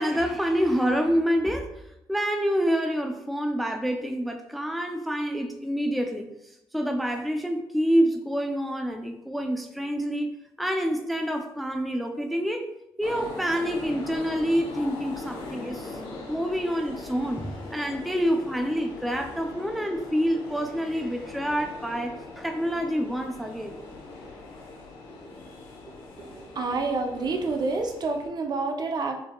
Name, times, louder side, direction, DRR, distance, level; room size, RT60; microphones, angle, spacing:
voice 1, 0.0-1.7 2.1-6.3 6.7-12.6 13.0-16.0 16.3-23.7, equal, ahead, 5 dB, 0.4 m, -27 dB
sound 1, 13.0-28.3, left 3 dB, 75° left, 0.9 m, -41 dB
voice 2, 25.9-29.2, right 3 dB, 50° right, 4 dB, 0.6 m, -29 dB
4.6 x 2.8 x 2.2 m, 0.84 s
cardioid pair, 75°, 9 cm